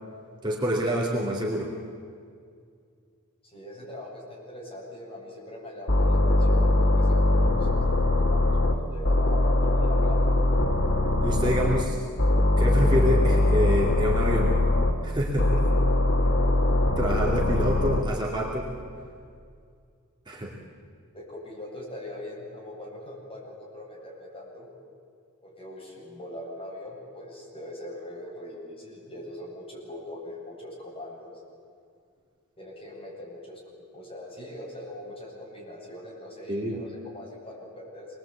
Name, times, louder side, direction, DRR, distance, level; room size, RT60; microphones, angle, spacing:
voice 1, 0.4-1.7 11.2-11.9 12.6-14.6 15.0-15.7 17.0-18.7 20.3-20.5 36.5-36.8, equal, 20° right, -3 dB, 2.5 m, -27 dB
voice 2, 3.4-10.2 11.2-11.5 21.1-24.7 25.4-31.3 32.6-33.6 33.9-38.1, left 1 dB, 25° left, -4 dB, 7.8 m, -41 dB
sound 1, 5.9-8.7 9.0-11.8 12.2-14.9 15.4-18.0, left 2 dB, 65° left, 2.4 m, -22 dB
27.0 x 21.5 x 8.5 m, 2.3 s
head